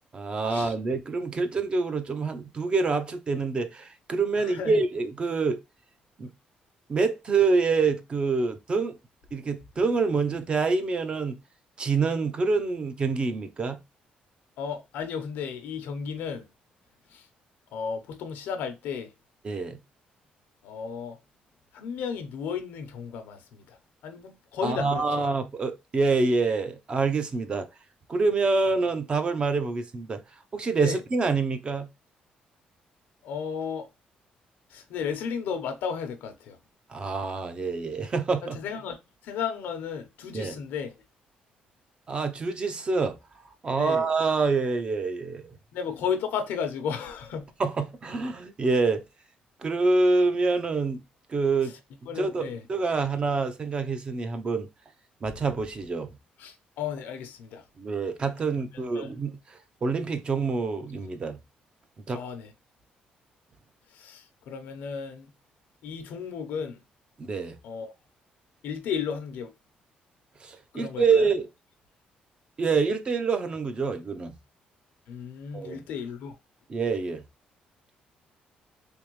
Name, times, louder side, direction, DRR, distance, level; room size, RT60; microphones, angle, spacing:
voice 1, 0.1-5.6 6.2-6.3 6.9-9.0 9.3-11.4 11.8-13.8 19.4-19.8 24.6-27.7 28.1-30.2 30.5-31.9 36.9-38.6 40.3-40.5 42.1-43.2 43.6-45.4 47.6-49.0 49.6-51.0 51.3-51.7 52.2-54.7 55.2-56.1 57.8-59.4 59.8-61.4 62.1-62.2 67.2-67.6 70.4-71.5 72.6-74.3 75.5-75.8 76.7-77.2, right 4 dB, 35° right, 0.6 m, -26 dB
voice 2, 4.3-4.8 14.6-16.5 17.1-17.2 17.7-19.1 20.6-21.2 21.7-23.8 24.0-25.2 30.8-31.0 33.2-33.9 34.7-36.6 38.4-39.0 39.2-40.9 43.8-44.1 45.7-47.5 51.6-51.7 52.1-52.6 56.4-57.6 58.7-59.1 62.1-62.5 63.9-65.3 65.8-66.8 67.6-67.9 68.6-69.5 70.7-71.3 75.1-76.3, left 6 dB, 90° left, 0.8 m, -34 dB
3.5 x 3.0 x 3.1 m
cardioid pair, 125°, 3 cm